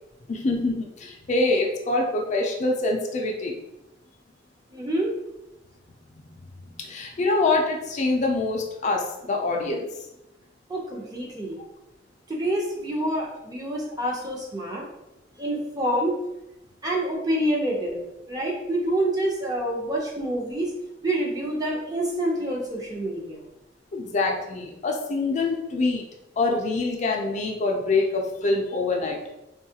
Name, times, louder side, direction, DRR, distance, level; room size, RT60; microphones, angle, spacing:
voice 1, 0.3-3.5 6.8-9.9 23.9-26.0 26.4-29.2, left 3 dB, 40° left, 1 dB, 0.4 m, -25 dB
voice 2, 4.7-5.1 10.7-11.6 12.3-14.8 15.4-16.2 16.8-18.0 18.3-20.7 21.0-23.4, right 1 dB, 20° right, -2 dB, 0.6 m, -27 dB
3.5 x 2.3 x 2.7 m, 0.91 s
head